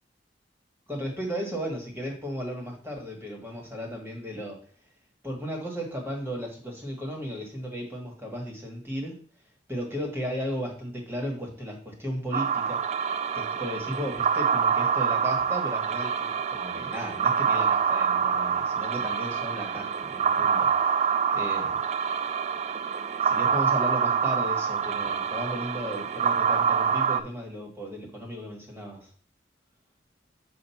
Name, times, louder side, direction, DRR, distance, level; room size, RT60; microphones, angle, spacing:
voice 1, 0.9-4.6 5.2-9.2 9.7-12.8 13.3-21.8 23.2-29.1, equal, 15° right, 0 dB, 1.6 m, -35 dB
sound 1, 12.3-27.2, right 7 dB, 40° right, 0.3 m, -26 dB
7.6 x 2.6 x 5.7 m, 0.43 s
head